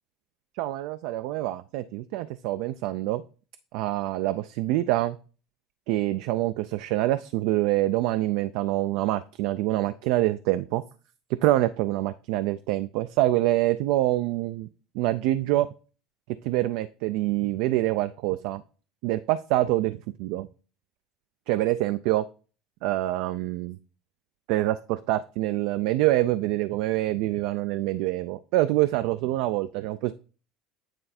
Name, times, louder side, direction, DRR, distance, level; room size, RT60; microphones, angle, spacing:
voice 1, 0.6-3.2 3.7-5.2 5.9-10.8 11.4-14.7 14.9-15.7 16.4-18.6 19.0-20.5 21.5-22.2 22.8-23.8 24.5-30.1, right 16 dB, 70° right, 11 dB, 0.3 m, -25 dB
8.9 x 3.3 x 4.2 m, 0.36 s
supercardioid pair, 90°, 0 cm